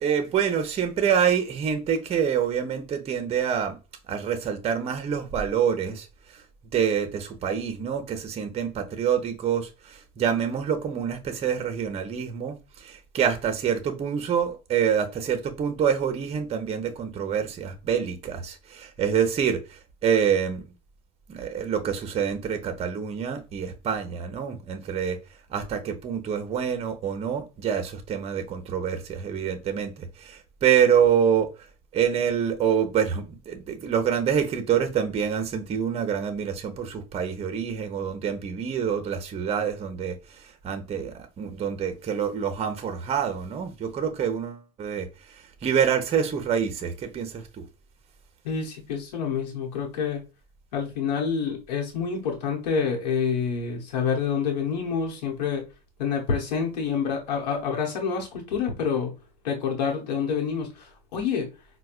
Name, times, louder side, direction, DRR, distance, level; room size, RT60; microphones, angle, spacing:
voice 1, 0.0-3.8 4.1-6.4 6.7-20.6 21.3-25.2 25.5-31.5 31.9-47.6, right 8 dB, 30° right, 0.7 m, -26 dB
voice 2, 48.4-50.2 50.7-55.6 56.0-59.1 59.4-61.5, left 6 dB, 85° left, 1.0 m, -27 dB
4.5 x 2.2 x 2.4 m
hypercardioid pair, 100°, 21 cm